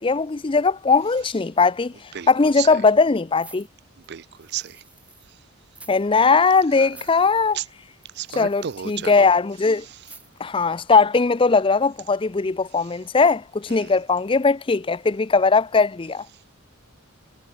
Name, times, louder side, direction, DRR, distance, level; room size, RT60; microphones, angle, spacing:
voice 1, 0.0-1.9 2.3-3.7 5.9-7.6 8.4-9.8 10.4-16.3, left 4 dB, 25° left, 0.4 m, -19 dB
voice 2, 2.1-2.8 4.1-4.8 6.7-6.9 7.5-7.6 8.1-9.3 9.8-10.0 12.8-12.9 13.7-14.0, right 9 dB, 50° right, 0.5 m, -33 dB
sound 1, 3.3-5.3 5.7-6.0 6.3-6.4 6.8-7.3 8.0-9.2 10.0-10.5 11.0-11.1, right 3 dB, 5° right, 2.2 m, -49 dB
sound 2, 5.9-7.4 7.7-7.9 8.1-8.3 8.6-11.4, left 3 dB, 45° left, 7.1 m, -61 dB
head